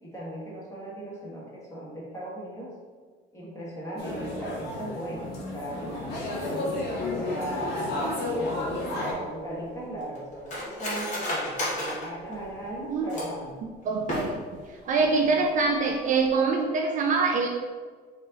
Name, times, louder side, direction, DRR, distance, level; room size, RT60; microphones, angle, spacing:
voice 1, 0.0-2.7 3.3-6.8 7.3-13.6 15.0-15.4, right 1 dB, 15° left, -6 dB, 1.4 m, -38 dB
sound 1, 4.0-9.1, left 2 dB, 60° left, 1.1 m, -31 dB
Cutlery silverware, 9.0-13.5 14.0-14.7 15.0-15.1 15.4-15.8 16.1-16.3, left 1 dB, 40° left, 1.4 m, -33 dB
voice 2, 13.8-14.4 14.8-17.5, right 4 dB, 45° right, 2 dB, 0.4 m, -24 dB
4.5 x 2.9 x 4.0 m, 1.5 s
cardioid pair, 165°, 19 cm